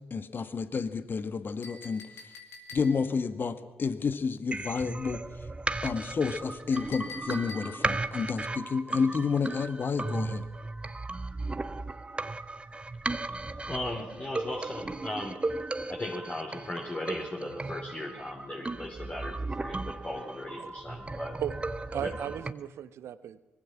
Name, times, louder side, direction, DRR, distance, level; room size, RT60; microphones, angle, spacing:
voice 1, 0.1-2.0 2.7-5.2 5.8-10.4, left 5 dB, 45° left, 11 dB, 1.8 m, -30 dB
Chink clink, 1.6-3.2 6.7-8.0, left 3 dB, 65° left, 4.6 m, -45 dB
sound 1, 4.5-22.5, right 2 dB, 25° right, 1.4 m, -36 dB
voice 2, 13.7-15.4 15.9-21.4 22.0-22.3, left 1 dB, 30° left, 0 dB, 4.4 m, -37 dB
voice 3, 21.9-23.4, right 10 dB, 65° right, 15 dB, 1.1 m, -36 dB
24.5 x 21.5 x 6.0 m, 1.2 s
hypercardioid pair, 40°, 5 cm